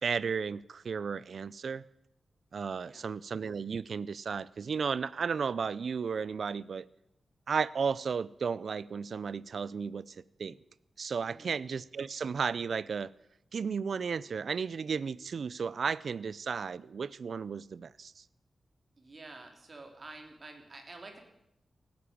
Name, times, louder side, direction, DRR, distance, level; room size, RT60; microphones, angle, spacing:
voice 1, 0.0-1.8 2.5-6.9 7.5-10.6 11.0-13.1 13.5-18.2, right 6 dB, 70° right, 0.5 m, -34 dB
voice 2, 11.2-11.6 19.0-21.2, right 2 dB, 40° right, 3.7 m, -49 dB
17.5 x 9.5 x 8.7 m
wide cardioid pair, 85°, 0 cm